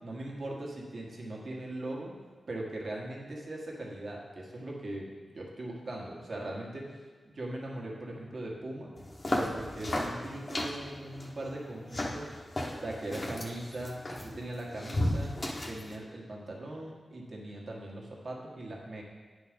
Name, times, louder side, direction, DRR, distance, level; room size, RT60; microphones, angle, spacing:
voice 1, 0.0-2.1 2.5-6.9 7.2-8.9 9.3-12.4 12.8-15.3 15.6-19.0, right 1 dB, 50° right, -2 dB, 1.5 m, -40 dB
sound 1, 9.0-15.9, left 1 dB, 30° left, 1.0 m, -35 dB
9.5 x 4.3 x 5.2 m, 1.5 s
wide cardioid pair, 135°, 0 cm